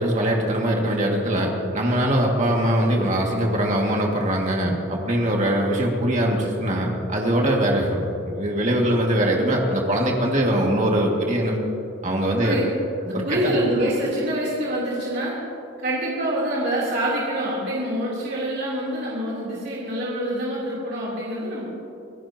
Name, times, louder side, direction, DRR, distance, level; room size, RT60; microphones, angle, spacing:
voice 1, 0.0-11.6 12.0-12.6 13.1-13.2, right 1 dB, 35° right, -1 dB, 2.2 m, -22 dB
voice 2, 13.0-15.3 15.8-21.7, right 1 dB, 50° right, -7 dB, 3.4 m, -26 dB
26.5 x 17.0 x 3.0 m, 2.7 s
head